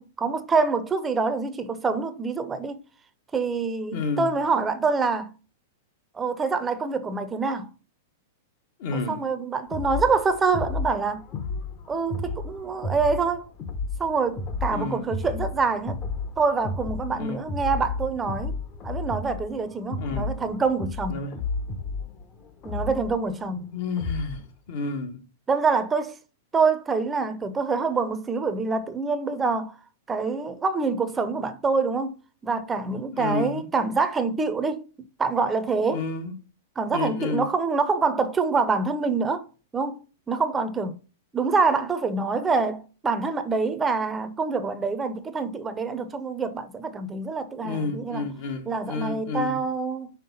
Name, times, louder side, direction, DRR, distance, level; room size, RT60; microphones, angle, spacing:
voice 1, 0.0-2.8 3.3-5.3 6.1-7.7 8.9-11.2 11.9-13.5 14.0-16.0 16.4-18.6 18.8-21.2 22.6-23.6 25.5-26.2 26.5-29.7 30.1-32.2 32.4-34.9 35.2-36.0 36.8-39.5 39.7-40.0 40.3-40.9 41.3-48.3 48.7-50.1, right 4 dB, 15° right, 0.7 m, -26 dB
voice 2, 3.9-4.3 8.8-9.3 14.7-15.1 17.1-17.4 20.0-20.3 21.1-21.3 23.7-25.2 33.2-33.7 35.9-36.4 36.9-37.5 47.6-49.6, left 4 dB, 60° left, 1.7 m, -30 dB
sound 1, 9.7-24.5, left 3 dB, 30° left, 1.0 m, -33 dB
5.6 x 3.6 x 5.5 m
hypercardioid pair, 125°, 0 cm